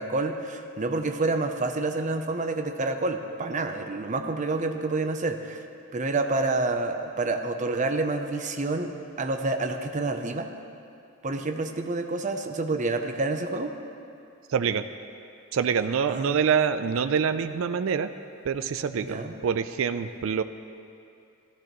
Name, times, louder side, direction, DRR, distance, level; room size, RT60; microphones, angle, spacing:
voice 1, 0.0-5.6 5.9-8.9 9.2-10.5 11.2-13.7 16.1-16.4 19.0-19.4, right 2 dB, 35° right, 6 dB, 0.6 m, -28 dB
voice 2, 14.5-14.8 15.5-18.1 18.4-20.4, right 6 dB, 70° right, 11 dB, 0.4 m, -26 dB
14.5 x 13.0 x 3.0 m, 2.5 s
head